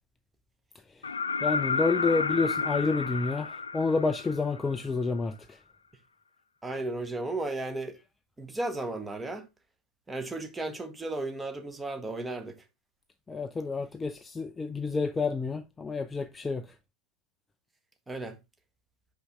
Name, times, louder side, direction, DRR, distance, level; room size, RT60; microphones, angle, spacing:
sound 1, 1.0-4.8 6.7-6.8, left 4 dB, 75° left, 0.5 m, -31 dB
voice 1, 1.4-5.6 13.3-16.8, left 4 dB, 15° left, 0.4 m, -29 dB
voice 2, 6.6-8.0 8.4-9.4 10.1-12.6 18.1-18.4, right 2 dB, 10° right, 1.1 m, -34 dB
5.5 x 5.5 x 3.7 m
figure-of-eight pair, 90°, 0 cm